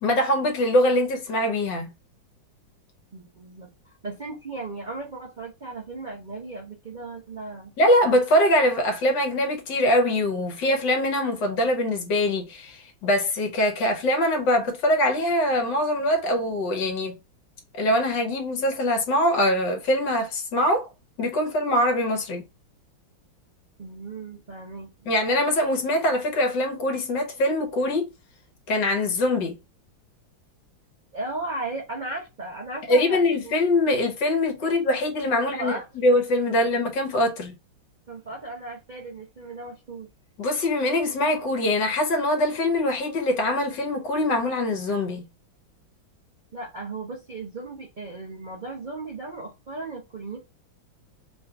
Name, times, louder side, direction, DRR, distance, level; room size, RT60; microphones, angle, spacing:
voice 1, 0.0-1.9 7.8-17.1 17.7-20.9 21.2-22.4 25.1-28.1 28.7-29.5 32.9-37.5 40.4-45.2, left 1 dB, 65° left, 1.6 m, -23 dB
voice 2, 3.1-7.7 23.8-25.1 31.1-33.6 35.4-35.9 36.5-36.6 38.1-40.1 46.5-50.4, right 2 dB, 55° right, 0.5 m, -36 dB
3.7 x 2.5 x 4.5 m
omnidirectional pair, 2.2 m